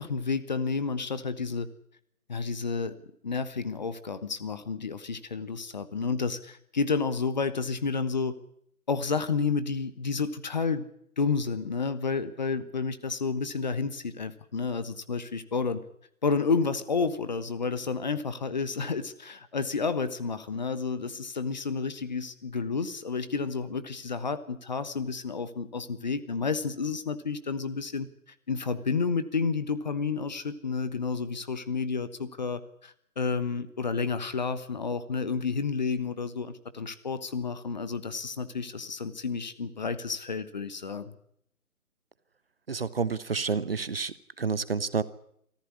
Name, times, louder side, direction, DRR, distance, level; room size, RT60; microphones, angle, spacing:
voice 1, 0.0-1.7 2.3-3.0 3.2-8.4 8.9-10.9 11.2-15.8 16.2-28.1 28.5-41.1, left 4 dB, 30° left, 13 dB, 1.2 m, -30 dB
voice 2, 42.7-44.1 44.4-45.0, right 5 dB, 40° right, 16 dB, 1.0 m, -29 dB
25.5 x 14.5 x 9.7 m, 0.72 s
figure-of-eight pair, 145°, 45 cm